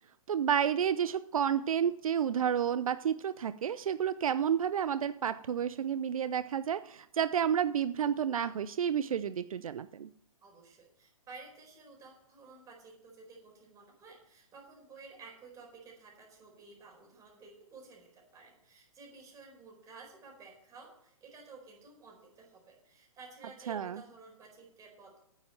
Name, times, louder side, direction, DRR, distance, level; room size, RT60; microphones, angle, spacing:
voice 1, 0.3-10.1 23.7-24.0, right 8 dB, 75° right, 14 dB, 0.5 m, -30 dB
voice 2, 10.4-25.2, right 4 dB, 20° right, 0 dB, 4.4 m, -53 dB
9.2 x 7.7 x 8.7 m, 0.73 s
hypercardioid pair, 130°, 18 cm